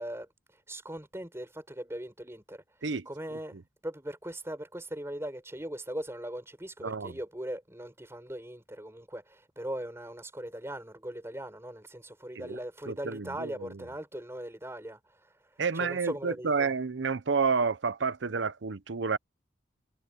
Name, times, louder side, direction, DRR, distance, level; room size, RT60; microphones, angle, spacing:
voice 1, 0.0-3.6 3.8-16.7, right 1 dB, 15° right, 4.4 m, -40 dB
voice 2, 6.8-7.2 12.4-12.6 12.9-13.5 15.6-19.2, right 5 dB, 75° right, 0.7 m, -30 dB
head